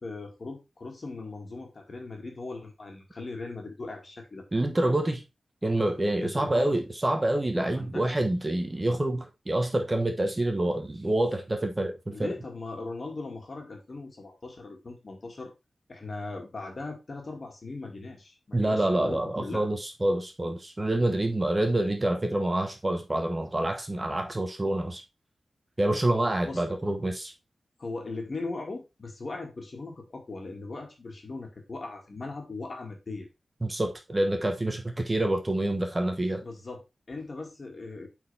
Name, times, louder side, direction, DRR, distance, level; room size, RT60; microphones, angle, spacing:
voice 1, 0.0-4.4 6.2-6.8 7.7-8.1 12.1-15.5 15.9-19.7 26.4-26.6 27.8-33.3 36.4-38.1, left 3 dB, 45° left, 2.3 m, -39 dB
voice 2, 4.5-5.2 5.6-12.3 18.5-25.0 25.8-27.3 33.6-36.4, right 1 dB, 20° right, 1.1 m, -27 dB
8.4 x 4.5 x 3.5 m
wide cardioid pair, 115°, 0 cm